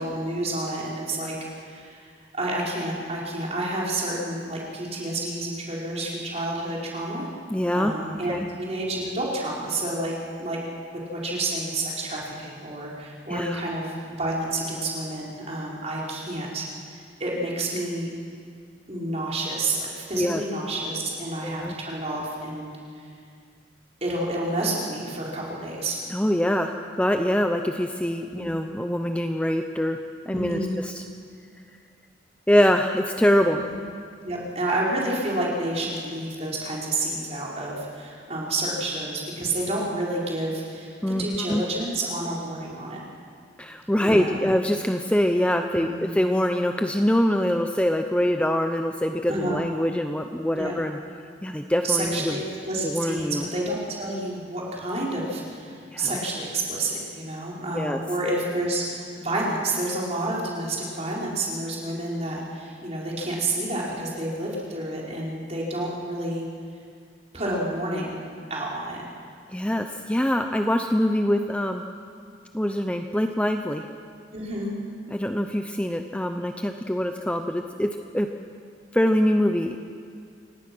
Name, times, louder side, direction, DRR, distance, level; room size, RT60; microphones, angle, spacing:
voice 1, 0.0-2.0 2.3-7.3 7.7-10.1 10.4-10.6 11.1-16.7 16.9-18.1 18.9-22.7 24.0-26.0 28.3-28.5 30.3-30.7 33.7-33.8 34.2-40.9 41.2-43.0 44.0-44.4 45.7-46.1 49.3-49.6 50.5-50.7 51.8-66.5 67.3-68.2 68.5-69.0 74.3-74.7, right 1 dB, 35° right, -4 dB, 4.6 m, -29 dB
voice 2, 7.5-7.9 8.3-8.5 13.3-13.6 20.1-20.4 21.4-21.7 26.1-30.0 30.3-31.0 32.5-33.6 41.0-41.6 43.6-51.0 51.4-52.4 52.8-53.4 55.9-56.2 57.7-58.0 69.5-71.8 72.5-73.8 75.1-78.3 78.9-79.8, equal, 5° left, 5 dB, 0.7 m, -24 dB
28.0 x 17.5 x 6.2 m, 2.2 s
head